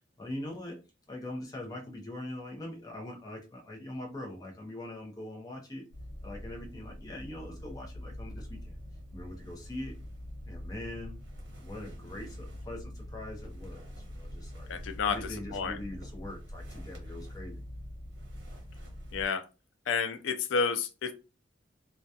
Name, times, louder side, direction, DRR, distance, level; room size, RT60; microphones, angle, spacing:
voice 1, 0.2-0.8 1.1-5.9 6.2-8.8 9.1-9.9 10.5-11.2 11.6-14.7 15.0-17.6, left 1 dB, 20° left, 0.5 m, -42 dB
sound 1, 5.9-19.3, equal, 70° right, 0.8 m, -44 dB
voice 2, 14.7-15.2 15.5-15.8 19.1-19.4 19.9-21.1, left 5 dB, 85° left, 0.4 m, -30 dB
2.2 x 2.2 x 2.7 m
head